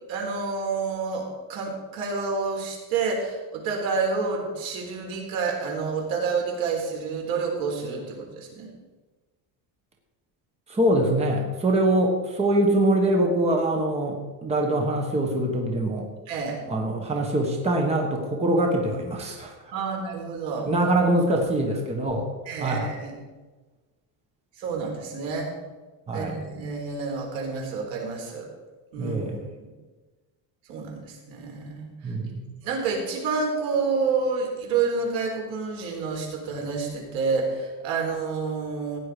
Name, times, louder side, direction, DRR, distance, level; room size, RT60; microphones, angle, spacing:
voice 1, 0.1-8.7 16.3-16.6 19.7-20.7 22.5-23.1 24.6-25.5 26.1-28.5 28.9-29.7 30.7-32.1 32.6-39.0, right 4 dB, 75° right, 0 dB, 4.0 m, -29 dB
voice 2, 10.7-16.1 16.7-19.5 20.6-22.3 22.6-22.9 26.1-26.5 29.0-29.4 32.0-32.6, right 1 dB, 15° right, 2 dB, 1.2 m, -24 dB
15.5 x 9.5 x 5.0 m, 1.3 s
cardioid pair, 180°, 46 cm